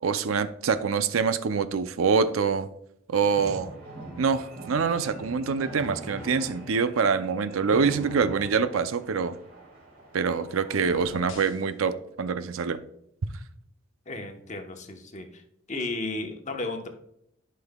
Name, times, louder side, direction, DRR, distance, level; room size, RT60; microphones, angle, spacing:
voice 1, 0.0-2.7 3.1-3.7 4.2-9.4 10.1-12.8, right 5 dB, 90° right, 12 dB, 0.5 m, -25 dB
sound 1, 3.2-11.2, right 1 dB, 50° right, 2.8 m, -43 dB
sound 2, 10.7-11.7, left 3 dB, 70° left, 0.9 m, -44 dB
voice 2, 14.1-15.4 15.7-16.9, left 2 dB, 35° left, 4 dB, 1.0 m, -34 dB
11.5 x 5.4 x 2.3 m, 0.74 s
head